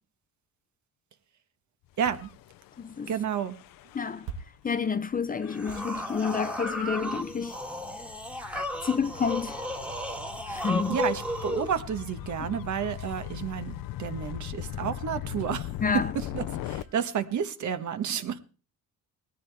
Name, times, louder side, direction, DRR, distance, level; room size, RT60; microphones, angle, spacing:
voice 1, 2.0-2.3 3.1-3.6 10.9-15.7 16.1-18.4, right 8 dB, 55° right, 1.5 m, -31 dB
sound 1, 2.0-2.4 4.2-4.7 5.7-6.8 8.5-9.1 10.9-11.2 12.9-13.3 15.3-15.7 16.7-16.9, right 6 dB, 80° right, 2.3 m, -46 dB
Gull seagull / Waves surf / Siren, 2.1-16.8, left 13 dB, 70° left, 0.7 m, -40 dB
voice 2, 2.8-3.1 3.9-4.3 4.6-7.6 8.8-9.6 10.5-11.0 15.8-16.1, left 6 dB, 25° left, 0.6 m, -29 dB
sound 2, 5.4-11.7, equal, 5° right, 1.8 m, -34 dB
19.0 x 14.0 x 3.5 m
cardioid pair, 135°, 35 cm